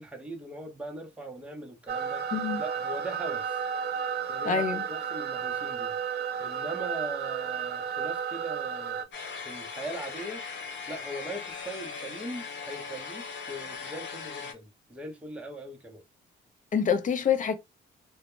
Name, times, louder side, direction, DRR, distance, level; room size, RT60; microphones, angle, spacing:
voice 1, 0.0-2.3 2.6-3.7 4.3-5.9 6.4-9.1 9.4-10.4 10.9-16.0, right 1 dB, 5° right, 0.7 m, -40 dB
sound 1, 1.9-9.0, right 7 dB, 55° right, 0.4 m, -32 dB
voice 2, 2.3-2.6 4.4-4.8 16.7-17.5, left 7 dB, 40° left, 0.5 m, -26 dB
sound 2, 9.1-14.5, left 5 dB, 65° left, 0.9 m, -39 dB
2.1 x 2.1 x 3.0 m
cardioid pair, 90°, 20 cm